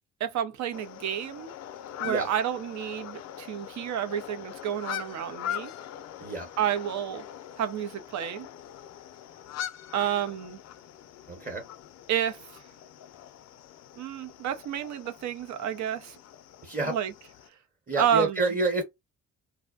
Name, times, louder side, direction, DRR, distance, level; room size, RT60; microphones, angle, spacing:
voice 1, 0.2-1.5 2.0-5.7 6.6-7.2 7.6-8.5 9.9-10.6 12.1-12.6 14.0-16.2 16.9-17.1 18.0-18.5, right 10 dB, 70° right, 0.5 m, -30 dB
sound 1, 0.7-17.5, left 10 dB, 60° left, 0.4 m, -42 dB
voice 2, 11.3-11.6 16.6-16.9 17.9-18.8, right 2 dB, 30° right, 0.9 m, -28 dB
2.5 x 2.1 x 2.3 m
cardioid pair, 90°, 30 cm